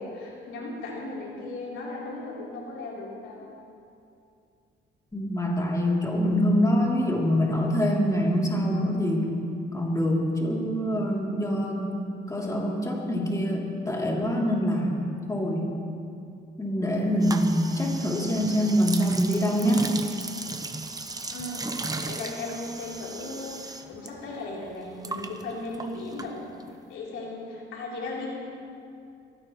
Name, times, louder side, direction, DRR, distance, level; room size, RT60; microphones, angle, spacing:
voice 1, 0.0-3.5 21.3-21.7 22.0-26.5 26.9-28.3, left 2 dB, 90° left, -4 dB, 3.7 m, -36 dB
voice 2, 5.1-9.4 9.7-11.9 12.3-15.7 16.6-19.9, equal, 15° left, -3 dB, 3.1 m, -25 dB
sound 1, 17.2-24.1 24.4-26.8, right 3 dB, 20° right, 1.0 m, -36 dB
23.0 x 16.5 x 3.2 m, 2.5 s
cardioid pair, 90°, 20 cm